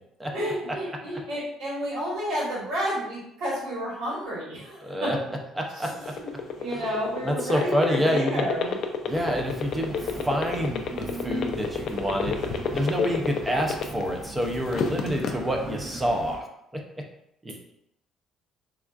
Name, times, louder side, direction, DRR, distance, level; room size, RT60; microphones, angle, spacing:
voice 1, 0.3-5.1 5.7-8.8, equal, 75° right, -6 dB, 1.2 m, -31 dB
voice 2, 4.8-5.2 5.6-5.9 6.7-6.8 7.2-8.5 9.1-10.0 10.2-12.4 12.7-16.5 17.4-17.5, equal, 10° right, 2 dB, 0.4 m, -27 dB
sound 1, 5.9-14.2 14.6-15.3, left 7 dB, 55° left, 0.3 m, -28 dB
sound 2, 9.1-16.4, right 2 dB, 40° right, 0.9 m, -39 dB
3.5 x 2.3 x 2.3 m, 0.79 s
cardioid pair, 135°, 0 cm